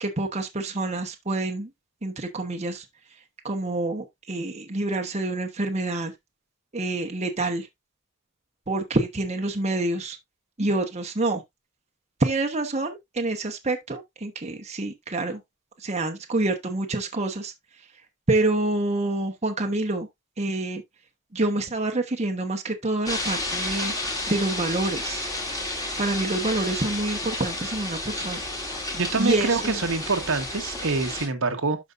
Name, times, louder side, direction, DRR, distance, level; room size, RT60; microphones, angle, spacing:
voice 1, 0.0-1.7 2.0-2.8 3.4-6.1 6.7-7.7 8.7-10.2 10.6-11.4 12.2-15.4 15.8-17.5 18.3-20.1 20.4-20.8 21.3-23.9 24.3-25.3 26.0-28.5 29.2-29.8, right 2 dB, 30° right, 1.1 m, -27 dB
sound 1, 23.1-31.3, left 1 dB, 15° left, 2.3 m, -31 dB
voice 2, 28.9-31.8, right 3 dB, 60° right, 1.2 m, -25 dB
12.0 x 5.2 x 2.5 m
head